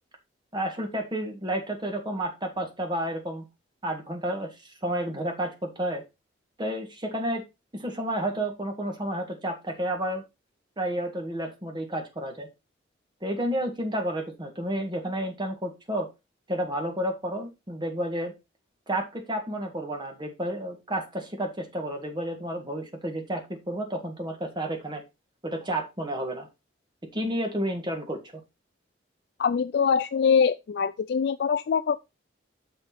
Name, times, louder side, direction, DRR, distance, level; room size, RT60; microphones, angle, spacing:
voice 1, 0.5-3.4 3.8-6.0 6.6-7.4 7.7-10.2 10.8-12.5 13.2-16.1 16.5-18.3 18.9-25.0 25.4-26.5 27.1-28.4, right 1 dB, 25° right, 1.6 m, -31 dB
voice 2, 29.4-32.0, left 6 dB, 55° left, 0.3 m, -23 dB
6.3 x 6.3 x 4.2 m
head